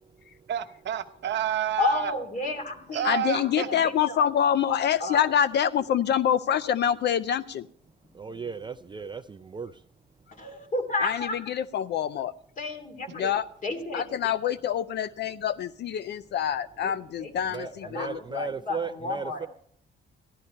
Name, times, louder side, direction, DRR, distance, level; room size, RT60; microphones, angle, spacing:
voice 1, 0.5-2.1 2.9-3.7 13.2-13.4, right 10 dB, 65° right, 0.9 m, -29 dB
voice 2, 1.8-3.1 3.3-4.2 5.0-5.3 8.3-8.4 10.4-11.4 12.6-13.2 13.6-14.0 16.8-16.9 17.2-19.5, left 3 dB, 40° left, 2.5 m, -32 dB
voice 3, 3.0-7.6 11.0-12.3 13.1-13.4 13.9-18.5, left 9 dB, 60° left, 0.4 m, -26 dB
voice 4, 8.1-9.7 17.5-19.5, right 5 dB, 25° right, 0.4 m, -36 dB
15.0 x 12.0 x 4.3 m
cardioid pair, 90°, 20 cm